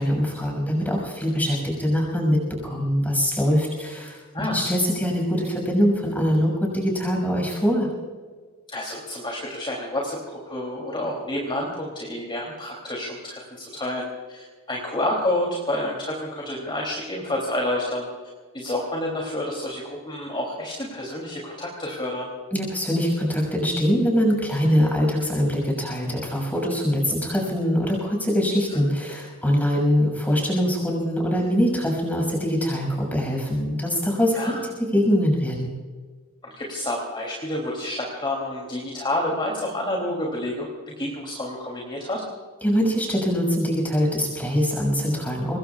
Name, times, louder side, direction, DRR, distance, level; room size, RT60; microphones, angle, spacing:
voice 1, 0.0-7.9 22.5-34.4 34.9-35.7 42.6-45.6, equal, 5° left, 0 dB, 6.6 m, -23 dB
voice 2, 8.7-18.1 18.5-22.3 34.4-34.6 36.4-42.2, left 1 dB, 20° left, -2 dB, 3.2 m, -29 dB
25.5 x 21.0 x 2.5 m, 1.5 s
head